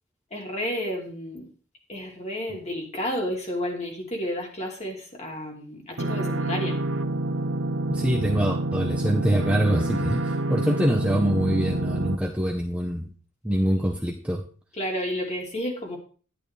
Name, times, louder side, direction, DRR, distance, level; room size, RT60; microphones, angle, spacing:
voice 1, 0.3-1.5 1.9-6.8 14.8-16.0, equal, 30° left, 0 dB, 3.1 m, -31 dB
sound 1, 6.0-12.1, right 2 dB, 75° right, 0.9 m, -27 dB
voice 2, 7.9-13.1 13.4-14.4, equal, 5° right, 2 dB, 0.9 m, -24 dB
11.5 x 11.0 x 3.3 m, 0.39 s
head